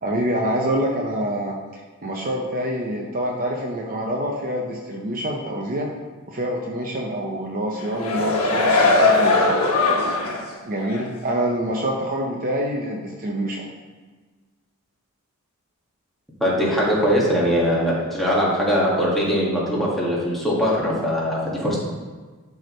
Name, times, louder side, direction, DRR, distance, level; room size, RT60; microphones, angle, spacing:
voice 1, 0.0-5.9 6.3-9.6 10.6-13.6, right 1 dB, 40° right, 0 dB, 0.7 m, -26 dB
sound 1, 7.8-10.5 10.9-11.0, left 3 dB, 75° left, 1.2 m, -19 dB
voice 2, 16.4-21.8, equal, ahead, -6 dB, 1.9 m, -21 dB
12.0 x 4.7 x 3.2 m, 1.4 s
head